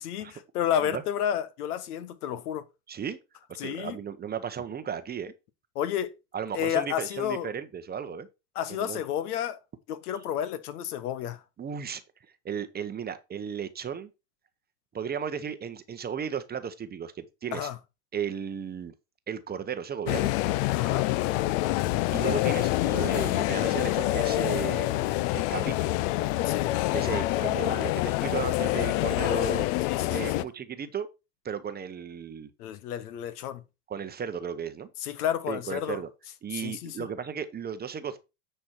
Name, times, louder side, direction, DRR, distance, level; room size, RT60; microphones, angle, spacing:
voice 1, 0.0-2.6 3.6-4.0 5.7-6.1 6.5-7.5 8.5-9.6 9.9-11.4 17.5-17.8 20.7-21.0 26.4-26.7 29.9-30.5 32.6-33.6 35.0-36.0 36.5-37.1, left 10 dB, 70° left, 1.2 m, -31 dB
voice 2, 2.9-3.2 3.6-5.3 6.3-8.3 8.7-9.0 11.6-12.0 12.4-14.1 14.9-17.7 18.1-18.9 19.3-20.3 22.1-25.9 26.9-29.7 30.1-31.1 31.4-32.5 33.9-34.9 35.5-36.1 36.4-38.2, right 7 dB, 20° right, 0.8 m, -35 dB
sound 1, 20.1-30.4, left 17 dB, 55° left, 0.6 m, -26 dB
9.6 x 4.4 x 4.4 m
hypercardioid pair, 105°, 47 cm